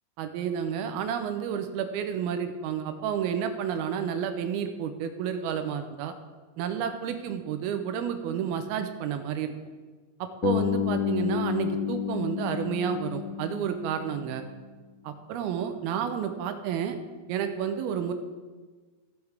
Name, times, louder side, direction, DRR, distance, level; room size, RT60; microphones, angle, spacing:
voice 1, 0.2-6.1 6.6-9.5 10.2-14.4 15.0-17.0 17.3-18.1, right 8 dB, 90° right, 8 dB, 2.6 m, -30 dB
Bass guitar, 10.4-14.5, left 10 dB, 85° left, 2.6 m, -30 dB
15.5 x 7.9 x 3.5 m, 1.4 s
omnidirectional pair, 4.5 m